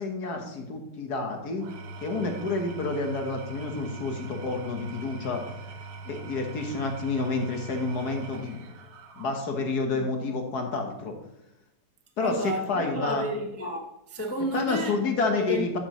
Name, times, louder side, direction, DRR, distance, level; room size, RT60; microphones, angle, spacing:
voice 1, 0.0-1.7 2.0-5.4 6.0-8.6 9.2-11.1 12.2-13.2 14.5-15.8, left 3 dB, 70° left, 1.7 m, -29 dB
Engine / Tools, 1.5-9.8, right 4 dB, 70° right, 1.5 m, -42 dB
voice 2, 12.2-15.0 15.3-15.7, equal, 15° left, 0.5 m, -31 dB
12.0 x 6.9 x 3.1 m
omnidirectional pair, 1.8 m